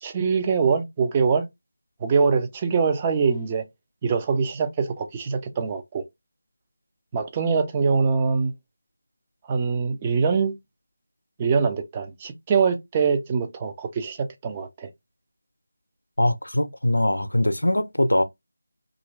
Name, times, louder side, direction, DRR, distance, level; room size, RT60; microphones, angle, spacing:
voice 1, 0.0-1.5 2.0-3.6 4.0-6.0 7.1-8.5 9.5-10.5 11.4-14.9, right 5 dB, 20° right, 0.4 m, -23 dB
voice 2, 16.2-18.2, left 1 dB, 85° left, 0.5 m, -22 dB
2.9 x 2.5 x 3.2 m
figure-of-eight pair, 165°, 0 cm